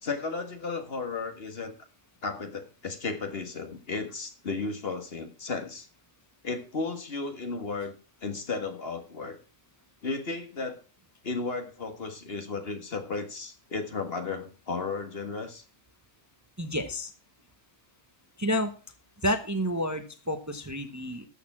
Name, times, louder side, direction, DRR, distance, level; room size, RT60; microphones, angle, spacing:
voice 1, 0.0-1.7 2.2-5.9 6.4-7.9 8.2-9.4 10.0-10.8 11.2-15.6, left 4 dB, 45° left, 7 dB, 1.7 m, -34 dB
voice 2, 16.6-17.1 18.4-18.7 19.2-21.3, equal, 15° right, 7 dB, 0.9 m, -29 dB
13.0 x 6.9 x 5.9 m, 0.36 s
omnidirectional pair, 1.4 m